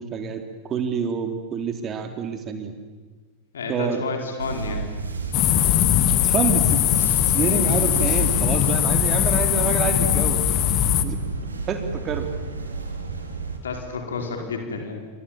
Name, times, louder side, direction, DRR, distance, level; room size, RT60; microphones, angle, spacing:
voice 1, 0.0-2.7 3.7-4.0 6.2-7.0 7.3-10.4 11.0-11.2 11.6-12.3, right 6 dB, 30° right, 6 dB, 3.9 m, -27 dB
voice 2, 3.5-4.9 13.6-15.0, left 4 dB, 65° left, 4 dB, 4.6 m, -30 dB
sound 1, 4.4-13.6, right 4 dB, 75° right, 3.5 m, -32 dB
sound 2, 5.3-11.0, left 12 dB, 35° left, 1.8 m, -20 dB
30.0 x 26.0 x 7.5 m, 1.4 s
figure-of-eight pair, 90°, 0 cm